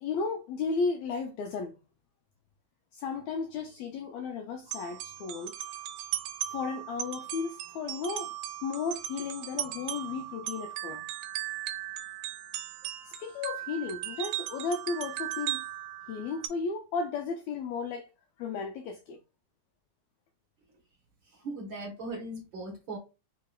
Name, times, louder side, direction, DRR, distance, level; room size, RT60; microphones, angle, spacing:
voice 1, 0.0-1.8 2.9-5.5 6.5-8.3 8.6-11.0 13.0-15.6 16.1-18.1 18.4-19.2, left 4 dB, 90° left, 1.6 m, -34 dB
Street Musician Playing Renaissance Melody on Glockenspiel, 4.7-16.5, right 13 dB, 85° right, 2.1 m, -37 dB
voice 2, 21.3-23.0, right 2 dB, 60° right, 1.3 m, -39 dB
5.0 x 2.9 x 2.2 m
omnidirectional pair, 3.8 m